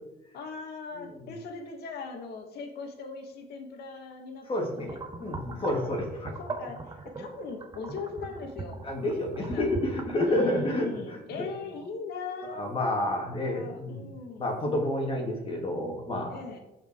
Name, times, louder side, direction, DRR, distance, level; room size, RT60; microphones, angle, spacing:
voice 1, 0.3-5.0 5.7-8.8 9.5-9.7 10.2-12.6 13.1-13.2 13.4-14.5 16.3-16.6, left 4 dB, 70° left, 3 dB, 2.3 m, -40 dB
voice 2, 1.0-1.3 4.5-4.9 5.2-6.3 8.8-10.9 12.4-14.1 14.4-16.4, left 1 dB, 35° left, 1 dB, 3.4 m, -29 dB
sound 1, 4.8-10.5, right 3 dB, 25° right, 1.3 m, -40 dB
15.5 x 5.9 x 4.9 m, 0.95 s
cardioid pair, 110°, 17 cm